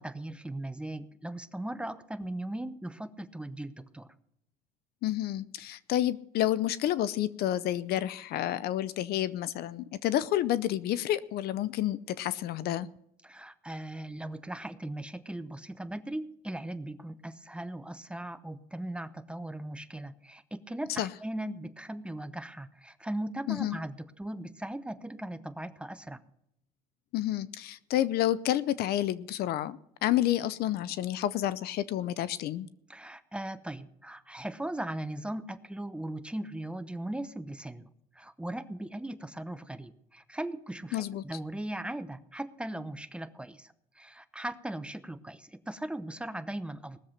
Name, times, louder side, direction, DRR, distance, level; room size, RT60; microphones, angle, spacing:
voice 1, 0.0-4.1 13.2-26.2 32.9-47.0, right 1 dB, 5° right, 12 dB, 0.7 m, -38 dB
voice 2, 5.0-12.9 21.0-21.1 23.5-23.8 27.1-32.7 40.9-41.2, left 13 dB, 65° left, 18 dB, 0.6 m, -29 dB
19.0 x 7.3 x 6.5 m, 0.77 s
cardioid pair, 105°, 18 cm